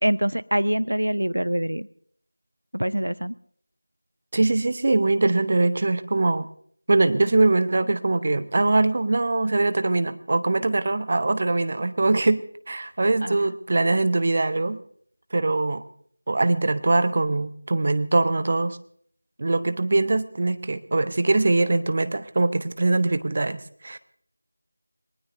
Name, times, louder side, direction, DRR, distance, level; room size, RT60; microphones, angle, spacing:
voice 1, 0.0-1.9 2.7-3.4 13.2-13.5, equal, 75° right, 17 dB, 0.5 m, -24 dB
voice 2, 4.3-6.5 6.9-14.8 15.3-15.8 16.3-18.8 19.4-24.0, right 2 dB, 30° right, 13 dB, 0.7 m, -22 dB
23.5 x 18.5 x 2.6 m, 0.62 s
figure-of-eight pair, 170°, 0 cm